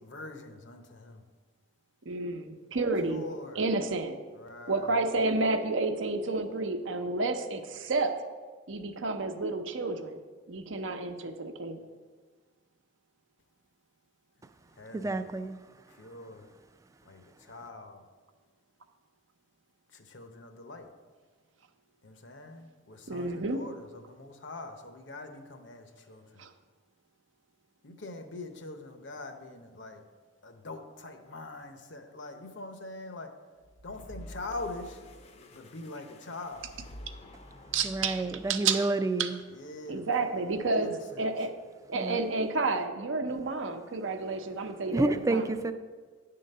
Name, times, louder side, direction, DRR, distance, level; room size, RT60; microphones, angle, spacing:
voice 1, 0.0-1.2 3.0-3.6 4.3-5.0 14.7-15.2 15.9-16.5 17.0-18.0 19.9-20.9 22.0-26.5 27.8-30.0 30.4-33.3 33.8-35.0 35.5-36.7 39.5-40.1 40.3-40.4 40.7-41.3, left 2 dB, 70° left, 7 dB, 0.8 m, -43 dB
voice 2, 2.0-3.2 3.5-4.2 4.7-8.2 8.7-10.2 10.5-11.9 23.1-23.6 26.4-26.5 37.7-38.2 38.5-38.9 39.2-39.3 39.9-40.9 41.2-41.5 41.9-45.5, right 3 dB, 80° right, 7 dB, 0.7 m, -30 dB
voice 3, 14.9-15.6 37.8-39.3 41.9-42.2 44.9-45.7, right 2 dB, 15° right, 10 dB, 0.3 m, -29 dB
sound 1, 33.6-38.9, equal, 35° left, 0.5 m, -49 dB
9.9 x 3.8 x 6.6 m, 1.5 s
head